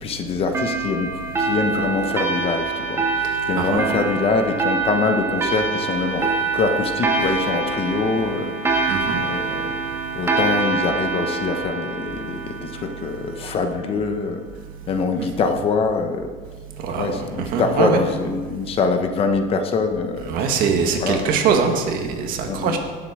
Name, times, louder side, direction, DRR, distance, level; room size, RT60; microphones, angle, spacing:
voice 1, 0.0-9.8 10.1-14.4 14.9-16.3 16.9-20.5 21.0-21.2 22.5-22.8, left 4 dB, 30° left, 6 dB, 1.0 m, -24 dB
sound 1, 0.5-13.6, right 4 dB, 15° right, 1.6 m, -25 dB
voice 2, 8.9-9.2 16.8-17.1 17.5-18.0 20.3-22.8, right 6 dB, 55° right, 4 dB, 1.7 m, -22 dB
18.0 x 7.6 x 4.9 m, 1.5 s
cardioid pair, 150°, 18 cm